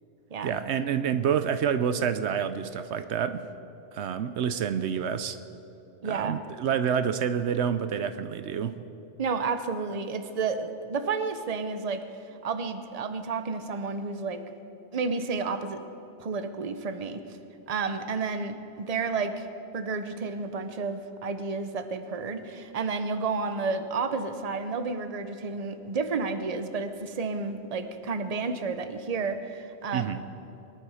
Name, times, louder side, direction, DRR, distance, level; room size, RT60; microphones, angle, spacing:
voice 1, 0.4-3.4 3.9-5.4 6.0-8.8 29.9-30.2, right 8 dB, 75° right, 11 dB, 0.9 m, -28 dB
voice 2, 6.0-6.4 9.2-12.0 12.4-14.4 14.9-15.8 16.2-17.2 17.7-19.5 19.7-30.2, right 4 dB, 35° right, 9 dB, 0.8 m, -31 dB
23.0 x 11.0 x 5.0 m, 3.0 s
omnidirectional pair, 1.2 m